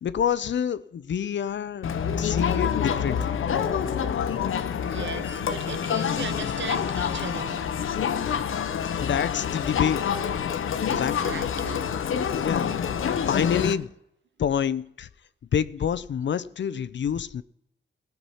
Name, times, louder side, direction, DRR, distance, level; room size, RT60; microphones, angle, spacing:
voice 1, 0.0-1.9 2.2-3.3 9.0-10.0 10.9-11.3 12.3-13.0 13.3-13.9 14.4-15.1 15.5-17.4, left 8 dB, 65° left, 0.6 m, -27 dB
Crowd, 1.8-13.7, left 8 dB, 85° left, 0.9 m, -27 dB
voice 2, 4.6-7.6 10.9-12.0, right 6 dB, 65° right, 0.9 m, -38 dB
18.0 x 6.0 x 5.6 m
wide cardioid pair, 110°, 21 cm